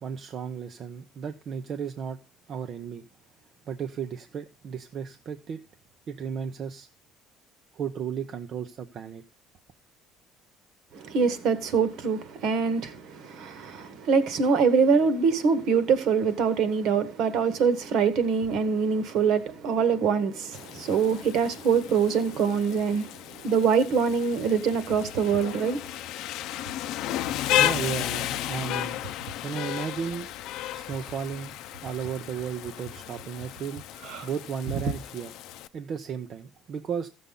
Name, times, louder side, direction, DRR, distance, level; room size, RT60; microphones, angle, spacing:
voice 1, 0.0-2.2 2.5-3.0 3.7-5.6 6.1-6.9 7.7-9.2 27.6-29.0 29.4-30.3 30.7-31.5 31.8-33.8 34.2-35.3 35.7-37.1, right 7 dB, 35° right, 0.7 m, -34 dB
voice 2, 10.9-23.1 23.4-25.8 34.0-34.3, right 5 dB, 50° right, 1.5 m, -24 dB
Rain, 20.5-35.7, left 13 dB, 55° left, 0.7 m, -33 dB
15.0 x 7.0 x 3.8 m
cardioid pair, 180°, 0 cm